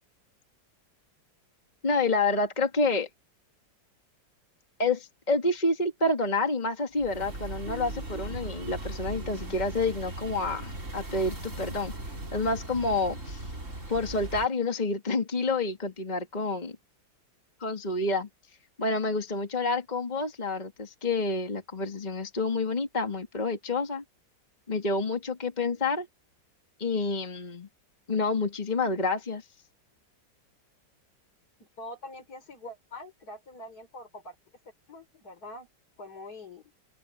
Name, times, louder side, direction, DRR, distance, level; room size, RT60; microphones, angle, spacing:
voice 1, 1.8-3.1 4.8-11.9 12.3-13.4 13.9-16.8 17.6-18.3 18.8-24.0 24.7-26.1 26.8-27.7 28.1-29.4, left 3 dB, 25° left, 2.3 m, -28 dB
sound 1, 6.9-14.5, right 1 dB, 40° right, 4.4 m, -38 dB
voice 2, 31.6-34.4 34.9-35.7 36.0-36.7, left 1 dB, 55° left, 4.5 m, -44 dB
open air
omnidirectional pair, 2.0 m